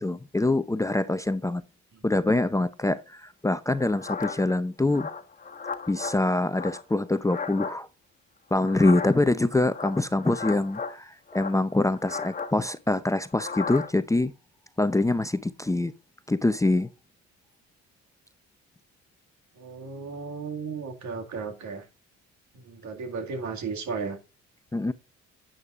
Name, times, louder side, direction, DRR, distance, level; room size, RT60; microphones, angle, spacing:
voice 1, 0.0-1.6 2.0-5.1 5.9-7.9 8.5-14.3 14.8-15.9 16.3-16.9 24.7-24.9, left 2 dB, 10° left, 0.6 m, -25 dB
sound 1, 3.8-4.5 4.9-6.2 6.5-7.8 8.6-9.3 9.7-11.0 11.3-12.5 13.3-13.9, left 5 dB, 25° left, 1.4 m, -35 dB
voice 2, 19.6-21.9 22.5-24.2, right 5 dB, 70° right, 2.1 m, -35 dB
9.7 x 8.8 x 2.4 m
cardioid pair, 90°, 30 cm